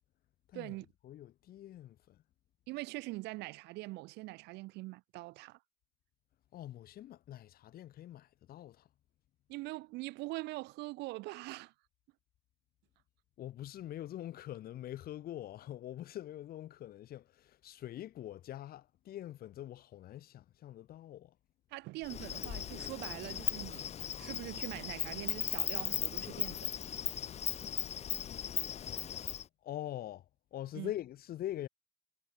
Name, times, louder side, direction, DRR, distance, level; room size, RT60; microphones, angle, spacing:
voice 1, 0.5-0.9 2.7-5.6 9.5-11.7 21.7-23.9 24.2-26.7 30.7-30.9, right 21 dB, 85° right, 0.6 m, -43 dB
voice 2, 1.0-2.2 6.5-8.9 13.4-21.3 29.6-30.2 30.5-31.7, left 12 dB, 65° left, 1.7 m, -44 dB
Insect, 22.0-29.4, left 9 dB, 40° left, 0.6 m, -37 dB
cardioid pair, 110°, 17 cm